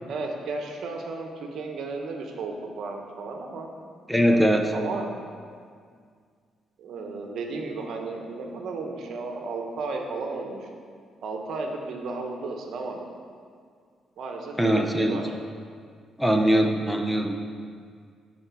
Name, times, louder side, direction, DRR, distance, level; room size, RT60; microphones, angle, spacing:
voice 1, 0.1-3.7 4.3-5.1 6.8-10.7 11.2-13.0 14.2-15.2, right 3 dB, 70° right, 2 dB, 1.1 m, -34 dB
voice 2, 4.1-4.7 14.6-15.2 16.2-17.4, equal, ahead, 3 dB, 0.7 m, -21 dB
8.9 x 4.5 x 6.1 m, 2.1 s
cardioid pair, 90°, 0 cm